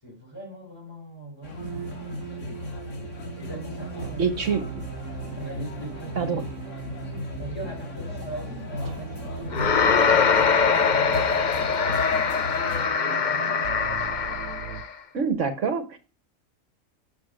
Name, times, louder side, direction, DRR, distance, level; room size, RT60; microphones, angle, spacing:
voice 1, 0.0-2.0 3.3-4.4 5.3-6.4 7.4-12.3 12.7-13.7, right 1 dB, 20° left, 4.5 m, -40 dB
sound 1, 1.4-12.9, left 2 dB, 65° left, 2.2 m, -36 dB
sound 2, 1.6-14.8, right 10 dB, 80° right, 1.1 m, -40 dB
voice 2, 4.2-4.6 6.2-6.4 15.1-16.0, right 6 dB, 65° right, 1.4 m, -25 dB
sound 3, 9.5-14.9, left 6 dB, 40° left, 0.8 m, -22 dB
12.0 x 6.3 x 6.4 m
omnidirectional pair, 1.4 m